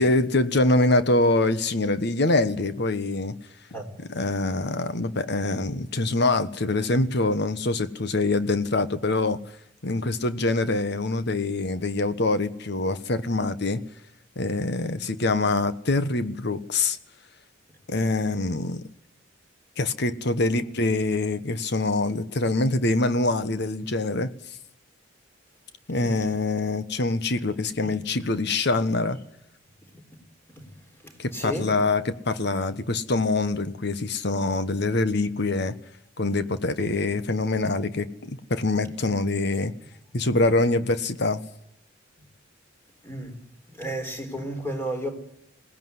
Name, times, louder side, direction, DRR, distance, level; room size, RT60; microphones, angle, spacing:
voice 1, 0.0-3.3 4.1-9.4 9.8-13.8 14.4-17.0 17.9-18.8 19.8-24.3 25.9-29.2 31.2-35.7 36.2-39.7 40.1-41.4, left 2 dB, 55° left, 1.2 m, -24 dB
voice 2, 31.0-31.7 43.0-43.4 43.7-45.1, right 1 dB, 10° left, 4.0 m, -33 dB
21.0 x 17.5 x 9.6 m
head